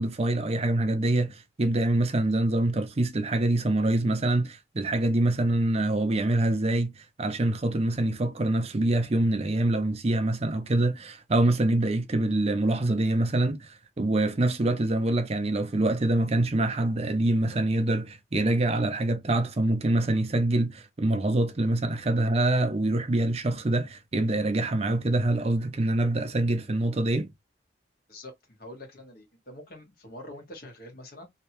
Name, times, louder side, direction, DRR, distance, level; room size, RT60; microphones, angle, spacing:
voice 1, 0.0-27.3, right 1 dB, 35° right, 0.5 m, -25 dB
voice 2, 28.1-31.3, left 1 dB, 55° left, 1.4 m, -45 dB
3.2 x 2.8 x 2.9 m
head